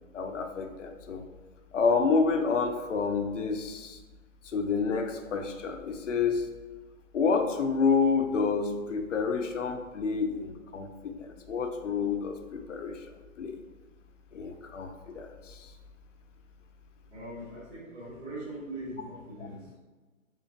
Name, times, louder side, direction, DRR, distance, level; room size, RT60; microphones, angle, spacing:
voice 1, 0.1-1.2 1.7-4.0 4.4-6.5 7.1-13.1 13.4-13.6 14.3-15.7, left 5 dB, 65° left, 5 dB, 0.5 m, -29 dB
voice 2, 17.1-19.8, right 1 dB, 55° right, -7 dB, 1.4 m, -41 dB
3.6 x 3.6 x 2.8 m, 1.3 s
hypercardioid pair, 175°, 41 cm